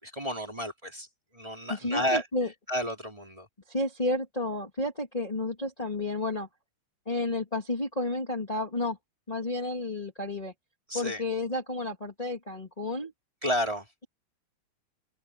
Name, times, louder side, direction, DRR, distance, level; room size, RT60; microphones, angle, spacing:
voice 1, 0.0-1.1 1.3-2.2 2.7-3.5 10.9-11.2 13.4-13.8, equal, 10° right, 2.6 m, -31 dB
voice 2, 1.7-2.5 3.7-6.5 7.0-9.0 9.3-10.5 10.9-13.1, left 2 dB, 20° left, 1.0 m, -31 dB
open air
omnidirectional pair, 5.3 m